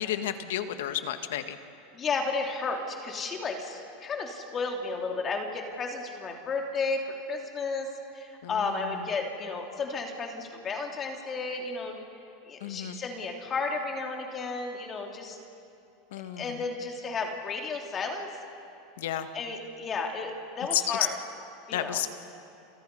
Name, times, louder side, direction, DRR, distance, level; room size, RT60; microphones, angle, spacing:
voice 1, 0.0-1.6 8.4-8.5 12.6-13.0 16.1-16.5 19.0-19.3 20.7-21.0 21.7-22.1, left 11 dB, 80° left, 8 dB, 1.7 m, -31 dB
voice 2, 1.9-12.0 12.5-15.4 16.4-18.3 19.1-21.2 21.7-22.0, left 4 dB, 30° left, 1 dB, 3.3 m, -33 dB
29.5 x 29.0 x 5.6 m, 2.6 s
supercardioid pair, 115°, 0 cm